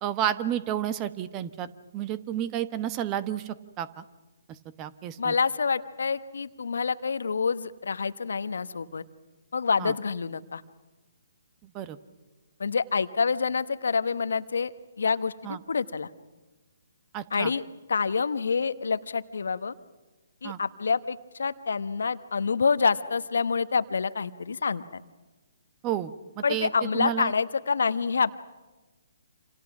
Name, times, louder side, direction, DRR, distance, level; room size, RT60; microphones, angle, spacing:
voice 1, 0.0-1.7 1.9-4.0 4.8-5.3 9.8-9.9 11.6-12.0 15.4-15.6 17.1-17.5 20.4-20.6 25.8-27.3, right 11 dB, 25° right, 13 dB, 1.2 m, -31 dB
voice 2, 5.2-9.0 9.5-10.6 12.6-14.7 15.0-16.1 17.3-17.6 17.9-19.7 20.4-25.0 26.4-28.3, left 5 dB, 70° left, 13 dB, 1.1 m, -27 dB
27.5 x 27.5 x 6.1 m, 1.2 s
figure-of-eight pair, 135°, 0 cm